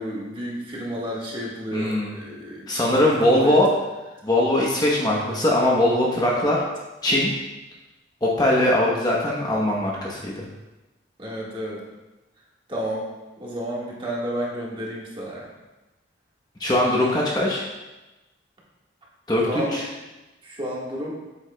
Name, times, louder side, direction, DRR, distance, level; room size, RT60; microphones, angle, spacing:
voice 1, 0.0-3.5 6.3-6.5 11.2-11.8 12.7-13.0 13.4-15.5 19.4-19.8 20.4-21.2, equal, 25° right, -4 dB, 1.5 m, -31 dB
voice 2, 1.7-2.1 2.7-3.7 4.2-6.6 7.0-7.3 8.2-10.5 16.6-17.6 19.3-19.9, left 1 dB, 20° left, -3 dB, 0.9 m, -21 dB
8.4 x 7.8 x 2.2 m, 1.1 s
head